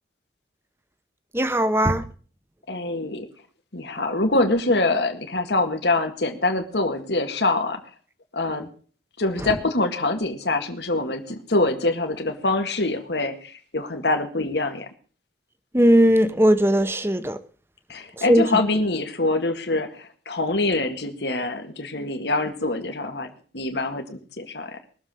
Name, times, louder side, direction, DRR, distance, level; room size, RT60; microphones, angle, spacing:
voice 1, 1.3-2.1 15.7-17.4 18.2-18.4, equal, 15° right, 0.9 m, -18 dB
voice 2, 2.7-3.3 3.7-7.8 8.3-8.7 9.2-14.9 17.9-23.3 23.5-24.8, left 2 dB, 75° left, 1.8 m, -25 dB
21.0 x 7.3 x 6.3 m
head